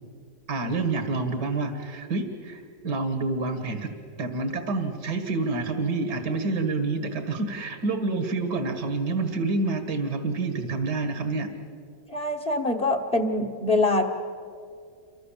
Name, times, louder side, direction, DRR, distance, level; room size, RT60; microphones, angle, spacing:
voice 1, 0.5-3.9 4.2-11.5, right 3 dB, 65° right, 8 dB, 2.3 m, -28 dB
voice 2, 12.1-14.0, left 2 dB, 35° left, 5 dB, 1.7 m, -24 dB
29.0 x 25.0 x 7.4 m, 2.4 s
omnidirectional pair, 1.9 m